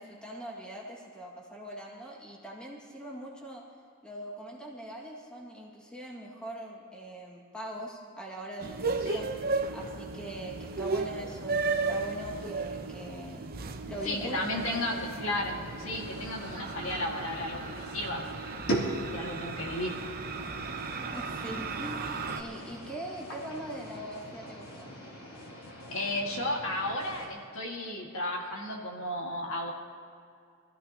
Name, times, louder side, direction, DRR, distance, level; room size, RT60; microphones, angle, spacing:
voice 1, 0.0-3.6 4.0-9.3 9.7-15.0 21.1-22.0 22.3-24.9, right 1 dB, 5° left, -3 dB, 2.0 m, -42 dB
sound 1, 8.6-22.4, right 4 dB, 45° right, 0.8 m, -35 dB
sound 2, 13.9-27.3, right 1 dB, 85° left, 2.9 m, -41 dB
voice 2, 14.0-18.4 19.1-20.0 25.9-29.7, left 1 dB, 65° left, -1 dB, 1.9 m, -34 dB
23.0 x 14.5 x 2.9 m, 2.4 s
head